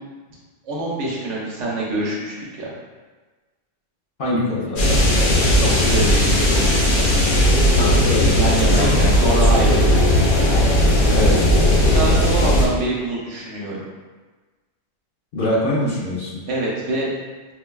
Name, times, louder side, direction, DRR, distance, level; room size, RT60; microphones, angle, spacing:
voice 1, 0.6-2.7 5.6-7.0 8.3-9.8 11.8-13.8 16.5-17.1, right 2 dB, 70° right, -5 dB, 1.1 m, -25 dB
voice 2, 4.2-4.8 7.8-8.4 8.7-8.9 11.1-11.5 15.3-16.4, left 1 dB, 55° left, -6 dB, 0.7 m, -23 dB
sound 1, 4.8-12.7, left 1 dB, 80° left, 1.1 m, -16 dB
4.4 x 2.2 x 2.2 m, 1.3 s
omnidirectional pair, 1.3 m